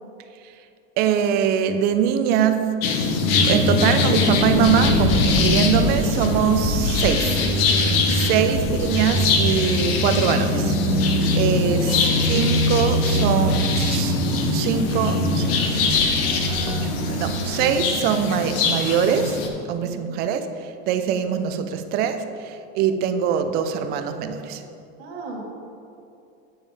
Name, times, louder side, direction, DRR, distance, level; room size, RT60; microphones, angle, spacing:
voice 1, 1.0-2.7 3.4-7.5 8.1-10.8 11.3-14.1 14.5-16.1 16.7-19.4 19.7-24.6, right 8 dB, 30° right, 8 dB, 0.4 m, -23 dB
sound 1, 2.8-19.5, left 4 dB, 65° left, 1.0 m, -23 dB
sound 2, 3.2-17.8, right 1 dB, 15° left, 1.3 m, -25 dB
voice 2, 8.0-8.5 11.3-12.0 19.8-20.1 25.0-25.5, right 3 dB, 75° right, -1 dB, 1.9 m, -38 dB
8.6 x 7.2 x 3.4 m, 2.6 s
supercardioid pair, 165°, 31 cm